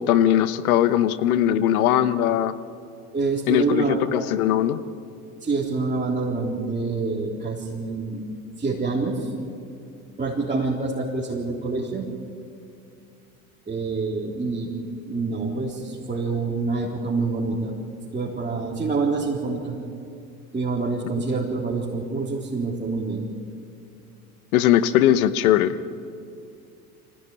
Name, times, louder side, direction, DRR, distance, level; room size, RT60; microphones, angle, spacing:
voice 1, 0.0-2.5 3.5-4.8 24.5-25.8, left 11 dB, 75° left, 13 dB, 1.2 m, -20 dB
voice 2, 3.1-4.3 5.4-8.2 8.6-9.3 10.2-12.1 13.7-14.8 15.0-17.8 18.1-19.8 20.5-23.3, right 3 dB, 20° right, -4 dB, 3.8 m, -26 dB
25.0 x 17.0 x 9.8 m, 2.5 s
hypercardioid pair, 80°, 44 cm